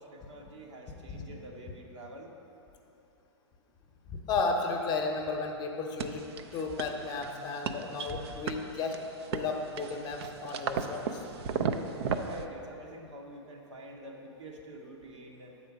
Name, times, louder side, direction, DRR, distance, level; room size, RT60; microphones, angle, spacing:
voice 1, 0.0-2.3 12.2-15.5, right 1 dB, 80° right, 0 dB, 1.2 m, -47 dB
voice 2, 4.3-6.3 6.5-8.9 9.3-11.2, left 4 dB, 30° left, 2 dB, 0.8 m, -33 dB
sound 1, 6.0-12.4, right 6 dB, 60° right, 0.5 m, -36 dB
7.8 x 4.3 x 5.9 m, 2.9 s
hypercardioid pair, 120°, 15 cm